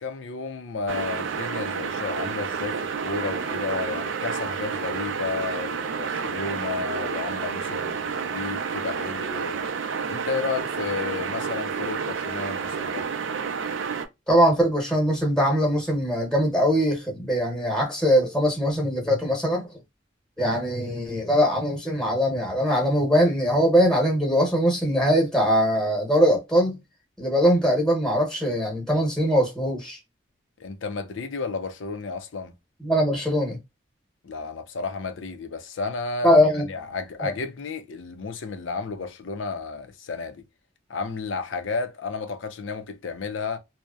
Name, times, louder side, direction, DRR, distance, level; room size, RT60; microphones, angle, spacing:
voice 1, 0.0-9.7 10.1-13.1 30.6-32.5 34.2-36.3 36.6-40.4 40.9-43.6, left 4 dB, 85° left, 0.5 m, -32 dB
sound 1, 0.9-14.0, right 6 dB, 85° right, 0.4 m, -30 dB
voice 2, 14.3-19.6 20.4-26.8 27.2-30.0 32.8-33.6 36.2-36.6 37.2-37.3, equal, 5° left, 0.9 m, -21 dB
2.8 x 2.0 x 2.2 m
head